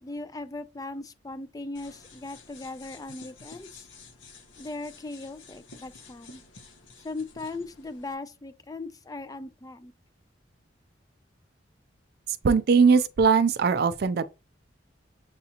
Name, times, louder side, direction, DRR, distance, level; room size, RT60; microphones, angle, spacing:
voice 1, 0.0-3.9 4.6-6.4 7.0-9.9, left 2 dB, 20° left, 0.3 m, -38 dB
sound 1, 1.7-8.1, left 4 dB, 85° left, 0.9 m, -51 dB
voice 2, 12.4-14.2, right 5 dB, 55° right, 0.4 m, -20 dB
7.2 x 2.4 x 2.8 m
head